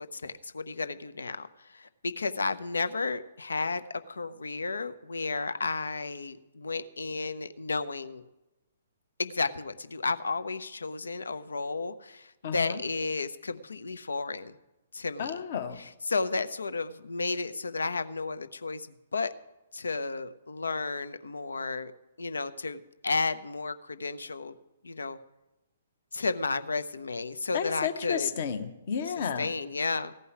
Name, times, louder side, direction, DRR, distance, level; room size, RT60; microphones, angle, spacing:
voice 1, 0.0-8.2 9.2-14.6 14.9-15.4 15.7-18.9 19.1-19.3 19.7-21.9 22.2-24.5 24.8-25.2 26.1-28.3 29.1-30.1, left 3 dB, 70° left, 13 dB, 0.7 m, -33 dB
voice 2, 12.4-12.8 15.2-15.8 27.5-29.5, left 7 dB, 45° left, 8 dB, 1.1 m, -32 dB
15.5 x 5.5 x 9.9 m, 0.98 s
figure-of-eight pair, 125°, 0 cm